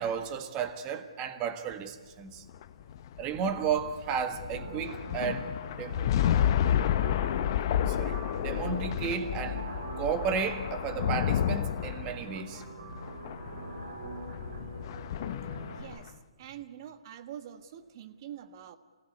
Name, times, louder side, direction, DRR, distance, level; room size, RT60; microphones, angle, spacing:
voice 1, 0.0-2.4 3.2-5.5 5.8-6.0 7.9-9.7 10.0-12.6, right 7 dB, 25° right, 1.6 m, -33 dB
sound 1, 2.5-16.1, left 10 dB, 40° left, 0.7 m, -31 dB
sound 2, 4.5-15.8, right 2 dB, 75° right, 4.6 m, -43 dB
voice 2, 15.7-18.8, right 10 dB, 40° right, 1.5 m, -45 dB
27.5 x 16.5 x 9.6 m
figure-of-eight pair, 135°, 3 cm